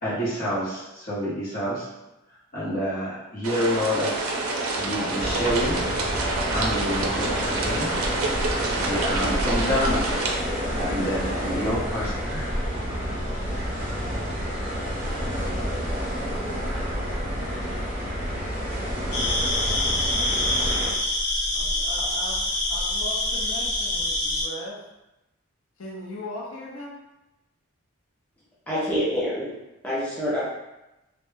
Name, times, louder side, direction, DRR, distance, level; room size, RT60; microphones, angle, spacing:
voice 1, 0.0-1.9 2.5-4.3 4.8-5.8 6.5-7.9 8.9-10.1 10.8-12.4, equal, 45° left, -9 dB, 0.8 m, -28 dB
sound 1, 3.4-10.4, right 2 dB, 85° right, 0.4 m, -28 dB
sound 2, 5.2-20.9, equal, 40° right, 0.7 m, -29 dB
sound 3, 19.1-24.4, left 1 dB, 90° left, 0.9 m, -25 dB
voice 2, 21.5-24.8 25.8-27.0, left 1 dB, 65° left, -4 dB, 0.5 m, -38 dB
voice 3, 28.7-29.5 29.8-30.4, equal, 5° left, -9 dB, 0.4 m, -26 dB
2.1 x 2.0 x 3.1 m, 0.97 s
head